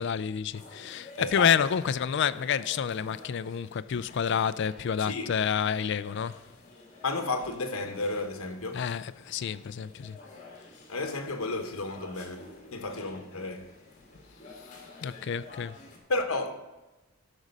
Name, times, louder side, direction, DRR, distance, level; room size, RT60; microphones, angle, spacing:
voice 1, 0.0-6.5 8.7-10.2 15.0-15.8, left 7 dB, 55° left, 0.3 m, -29 dB
sound 1, 0.5-16.0, left 3 dB, 35° left, 2.1 m, -50 dB
voice 2, 1.2-1.5 5.0-5.4 7.0-8.8 10.9-13.7 14.5-15.0 16.1-16.7, left 2 dB, 70° left, 1.0 m, -33 dB
12.0 x 6.2 x 5.2 m
head